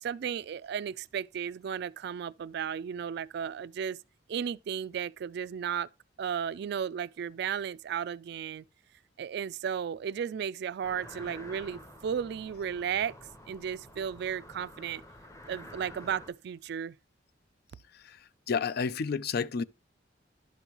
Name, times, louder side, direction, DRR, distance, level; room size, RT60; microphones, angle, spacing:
voice 1, 0.0-4.0 4.3-5.9 6.2-8.6 9.2-13.1 13.5-15.0 15.5-17.0, right 8 dB, 60° right, 0.3 m, -34 dB
sound 1, 10.8-16.3, left 1 dB, 15° left, 0.9 m, -49 dB
voice 2, 18.5-19.6, left 5 dB, 55° left, 0.4 m, -30 dB
11.5 x 5.4 x 2.9 m
head